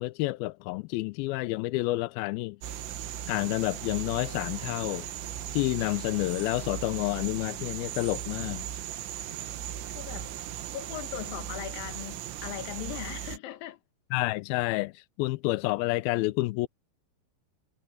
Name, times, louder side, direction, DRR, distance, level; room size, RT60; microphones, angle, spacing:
voice 1, 0.0-2.6 3.3-5.1 5.5-8.6 14.1-16.7, left 21 dB, 85° left, 2.1 m, -29 dB
sound 1, 2.6-13.4, right 10 dB, 90° right, 3.7 m, -38 dB
voice 2, 9.9-10.3 10.7-13.8, left 14 dB, 70° left, 2.6 m, -39 dB
omnidirectional pair, 4.9 m